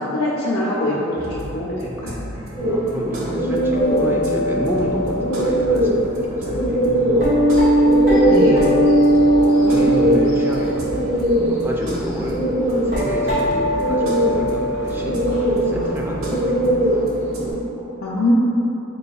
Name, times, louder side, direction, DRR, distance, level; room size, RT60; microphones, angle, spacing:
voice 1, 0.0-2.3 8.3-8.6 18.0-18.3, left 1 dB, 75° left, -6 dB, 0.5 m, -23 dB
sound 1, 1.2-17.6, equal, 85° right, 0.8 m, -34 dB
sound 2, 2.6-17.5, equal, 30° left, 1.3 m, -22 dB
voice 2, 2.7-7.3 8.2-8.7 9.3-10.8 11.1-17.1 17.8-18.1, equal, 10° right, -2 dB, 0.3 m, -29 dB
sound 3, 3.7-5.8 6.6-6.7 7.2-11.5 12.2-12.3 12.8-15.8 16.0-16.1 16.7-16.8, right 1 dB, 50° right, 1.3 m, -19 dB
4.3 x 3.9 x 2.3 m, 2.8 s
head